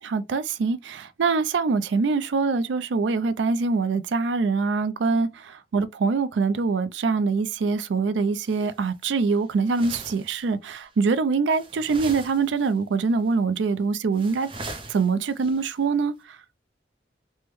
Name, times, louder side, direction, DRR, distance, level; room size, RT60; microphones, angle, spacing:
voice 1, 0.0-14.5 14.9-16.4, right 4 dB, 80° right, 0.4 m, -24 dB
sound 1, 8.4-8.8 9.1-10.5 10.7-10.9 11.5-12.8 13.0-13.3 13.6-13.7 14.1-15.8, right 2 dB, 30° right, 0.5 m, -41 dB
3.4 x 2.1 x 3.0 m
head